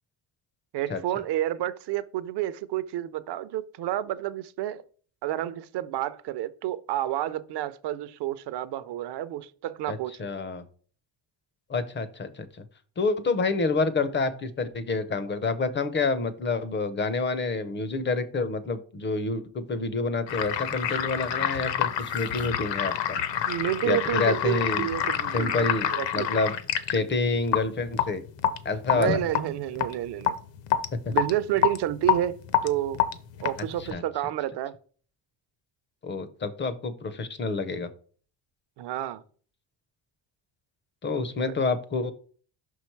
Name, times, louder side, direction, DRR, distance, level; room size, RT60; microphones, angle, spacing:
voice 1, 0.7-4.8 5.2-10.3 23.5-26.3 28.9-30.3 31.1-33.0 33.4-34.7 38.8-39.2 41.2-41.5, right 13 dB, 55° right, 0.6 m, -30 dB
voice 2, 9.9-10.6 11.7-12.5 13.0-23.2 23.8-24.9 25.3-25.9 26.1-26.5 26.9-28.2 28.6-29.2 33.8-34.0 36.0-37.9 41.0-42.1, left 3 dB, 25° left, 0.5 m, -28 dB
sound 1, 20.3-33.9, left 10 dB, 60° left, 0.7 m, -28 dB
5.9 x 4.6 x 4.5 m
cardioid pair, 170°, 49 cm